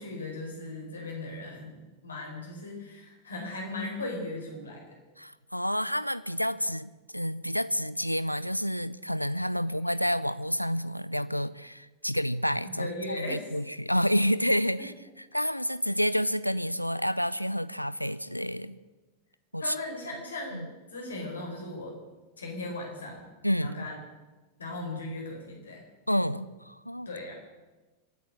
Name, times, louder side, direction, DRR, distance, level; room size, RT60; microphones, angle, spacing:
voice 1, 0.0-4.9 12.6-13.4 19.6-20.6 20.9-22.0 22.4-23.3 23.6-24.0 24.6-25.8 27.0-27.3, left 2 dB, 70° left, 0 dB, 4.6 m, -37 dB
voice 2, 5.2-14.9 15.3-18.8 19.5-19.7 20.5-20.7 23.4-23.9 26.1-27.1, equal, 90° left, 17 dB, 0.5 m, -29 dB
24.5 x 8.9 x 6.4 m, 1.2 s
figure-of-eight pair, 90°, 0 cm